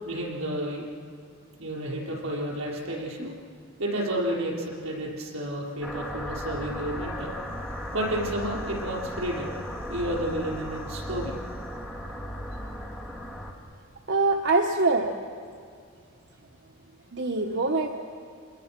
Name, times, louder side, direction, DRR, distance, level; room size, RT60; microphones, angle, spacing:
voice 1, 0.0-0.8 1.6-3.4 3.8-7.3 7.9-9.6 9.9-11.3, right 1 dB, 80° right, -3 dB, 5.3 m, -31 dB
sound 1, 5.8-13.5, equal, 5° left, 2.5 m, -36 dB
voice 2, 14.1-15.1 17.1-17.9, right 3 dB, 55° right, 2 dB, 1.2 m, -23 dB
28.0 x 21.0 x 6.1 m, 2.3 s
head